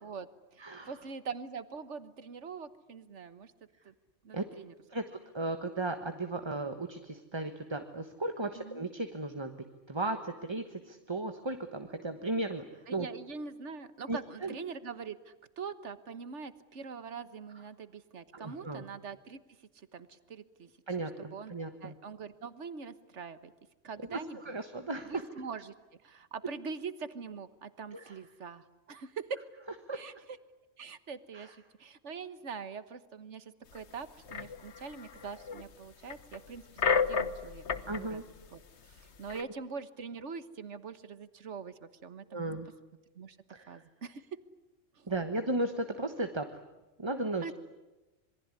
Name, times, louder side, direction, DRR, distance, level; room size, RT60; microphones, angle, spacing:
voice 1, 0.0-3.5 3.8-3.9 4.2-4.7 8.5-8.8 12.9-19.4 19.7-20.7 21.3-21.5 21.8-23.5 23.8-24.4 25.1-25.7 26.0-29.4 29.9-30.1 30.8-38.2 38.5-42.6 43.1-43.4 43.7-44.3 45.0-45.1 47.4-47.5, right 5 dB, 70° right, 13 dB, 1.6 m, -43 dB
voice 2, 0.6-0.9 4.3-4.4 4.9-12.6 12.9-13.1 14.1-14.6 18.3-18.8 20.9-21.9 24.1-24.2 24.4-25.2 27.9-28.1 29.9-30.0 31.3-31.5 37.9-38.2 39.3-39.4 42.3-42.7 43.5-43.8 45.1-46.5 47.0-47.4, right 2 dB, 20° right, 7 dB, 1.3 m, -35 dB
sound 1, 33.8-33.9 34.3-35.6 36.1-38.0 38.4-38.5 38.9-39.4, left 6 dB, 65° left, 1.4 m, -32 dB
26.5 x 22.5 x 9.7 m, 1.1 s
omnidirectional pair, 1.3 m